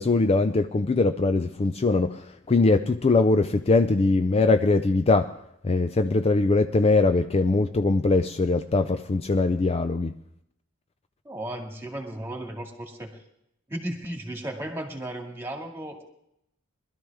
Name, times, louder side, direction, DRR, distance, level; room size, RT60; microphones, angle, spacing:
voice 1, 0.0-5.3 5.6-10.1, left 3 dB, 30° left, 0.4 m, -22 dB
voice 2, 11.2-13.1 13.7-16.0, right 1 dB, 10° right, 2.1 m, -35 dB
21.0 x 12.5 x 3.5 m
head